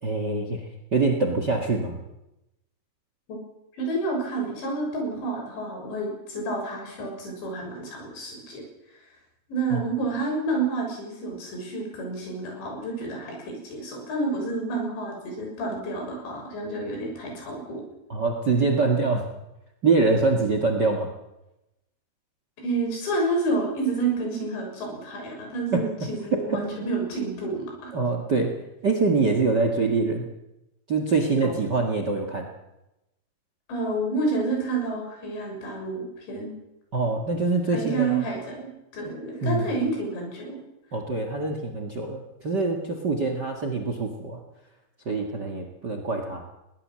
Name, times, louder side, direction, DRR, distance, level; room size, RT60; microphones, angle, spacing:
voice 1, 0.0-2.0 9.7-9.8 18.1-19.2 19.8-21.1 25.7-25.8 26.3-26.6 27.9-28.5 28.8-30.3 30.9-32.5 36.9-38.3 39.4-39.7 40.9-44.4 45.0-46.4, right 3 dB, 80° right, 5 dB, 0.9 m, -24 dB
voice 2, 3.7-8.6 9.5-17.8 22.6-27.9 31.3-31.5 33.7-36.5 37.7-40.6, right 2 dB, 70° left, 1 dB, 8.8 m, -29 dB
22.5 x 18.5 x 7.6 m, 0.92 s
omnidirectional pair, 5.4 m